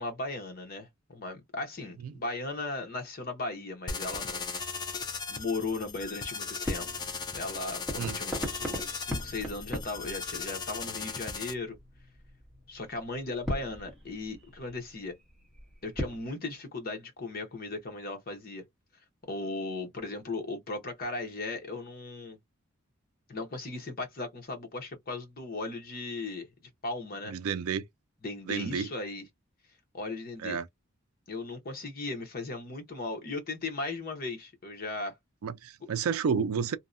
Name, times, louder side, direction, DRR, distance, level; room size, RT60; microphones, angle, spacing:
voice 1, 0.0-4.4 5.3-6.9 7.3-11.8 12.7-15.1 15.8-18.6 19.3-22.4 23.3-26.5 26.8-27.4 28.2-29.2 29.9-30.6 31.3-35.1, left 3 dB, 45° left, 0.8 m, -37 dB
sound 1, 3.9-11.5, left 5 dB, 20° left, 0.4 m, -37 dB
sound 2, 4.0-16.3, equal, ahead, 1.0 m, -41 dB
voice 2, 27.3-27.8 28.5-28.9 30.4-30.7 35.4-36.8, right 6 dB, 80° right, 0.4 m, -30 dB
2.7 x 2.1 x 2.4 m
head